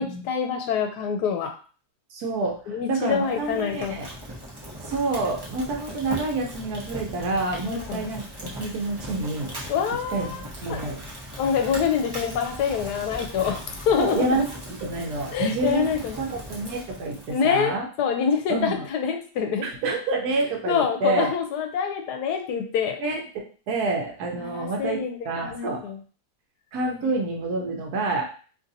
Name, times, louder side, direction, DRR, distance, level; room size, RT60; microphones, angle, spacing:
voice 1, 0.0-1.5 2.7-4.0 7.6-8.1 9.7-10.4 10.7-10.8 11.4-14.4 15.3-16.2 17.3-19.6 20.7-23.0 24.4-25.2 25.4-26.0 27.6-27.7, left 7 dB, 80° left, 4 dB, 1.2 m, -26 dB
voice 2, 2.1-4.1 4.8-9.5 10.1-11.0 14.0-14.5 14.8-15.9 16.2-17.9 18.5-18.8 19.6-21.3 23.0-23.2 23.7-25.0 25.2-25.8 26.7-28.2, right 3 dB, 70° right, 1 dB, 1.2 m, -28 dB
Fire, 3.2-17.6, equal, 30° right, 0.4 m, -39 dB
3.1 x 2.6 x 2.6 m, 0.39 s
omnidirectional pair, 1.7 m